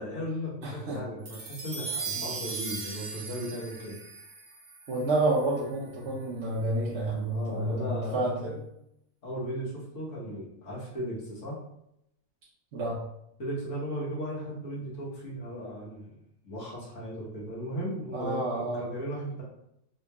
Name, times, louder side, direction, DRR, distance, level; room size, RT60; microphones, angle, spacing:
voice 1, 0.0-4.0 7.3-8.6 9.2-11.6 13.4-16.1 16.4-19.4, equal, 60° left, -7 dB, 1.5 m, -36 dB
voice 2, 0.6-1.0 4.9-8.5 12.7-13.0 18.1-18.8, right 2 dB, 60° right, -7 dB, 1.0 m, -29 dB
sound 1, 1.3-5.8, right 4 dB, 85° right, 1.4 m, -38 dB
3.7 x 2.8 x 2.3 m, 0.80 s
omnidirectional pair, 1.5 m